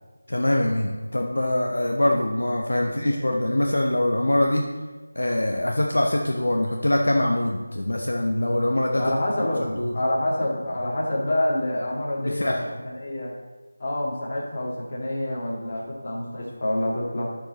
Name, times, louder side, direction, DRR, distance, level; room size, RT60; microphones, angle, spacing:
voice 1, 0.3-4.7 5.1-9.1 9.6-9.9 12.2-12.7, left 1 dB, 65° left, 0 dB, 0.9 m, -23 dB
voice 2, 3.0-3.3 9.0-9.6 9.9-13.3 13.8-17.4, left 1 dB, 35° left, -3 dB, 1.9 m, -27 dB
11.5 x 4.8 x 4.1 m, 1.3 s
figure-of-eight pair, 165°, 0 cm